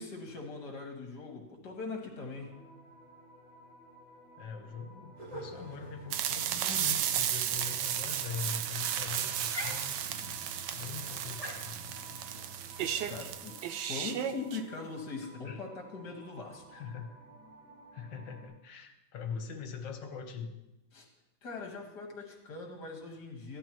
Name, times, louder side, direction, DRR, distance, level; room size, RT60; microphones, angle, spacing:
voice 1, 0.0-2.5 13.1-13.6 13.9-16.8 20.9-21.1 21.4-23.6, left 4 dB, 60° left, 1 dB, 2.3 m, -41 dB
sound 1, 2.4-18.5, right 1 dB, 50° right, 5.4 m, -56 dB
voice 2, 4.4-10.0 10.7-11.8 15.2-15.6 16.7-17.1 17.9-20.6, left 6 dB, 80° left, 6 dB, 1.7 m, -42 dB
sound 2, 5.2-13.4, equal, 20° right, 2.4 m, -47 dB
sound 3, 6.1-14.6, right 10 dB, 75° right, 1.2 m, -34 dB
15.0 x 11.0 x 3.1 m, 0.95 s
omnidirectional pair, 2.0 m